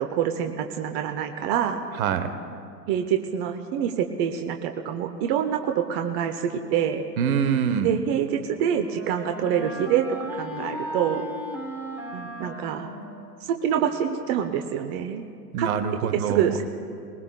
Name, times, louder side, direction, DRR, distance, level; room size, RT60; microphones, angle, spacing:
voice 1, 0.0-1.8 2.9-7.0 7.8-11.2 12.1-12.9 13.4-15.2 15.6-15.7 16.1-16.6, right 9 dB, 40° right, 6 dB, 0.8 m, -26 dB
voice 2, 2.0-2.4 7.2-7.9 15.5-16.5, right 7 dB, 55° right, 10 dB, 1.1 m, -25 dB
Wind instrument woodwind instrument, 8.0-13.8, right 1 dB, 5° right, 3.6 m, -37 dB
22.0 x 20.0 x 2.3 m, 2.4 s
hypercardioid pair, 100°, 49 cm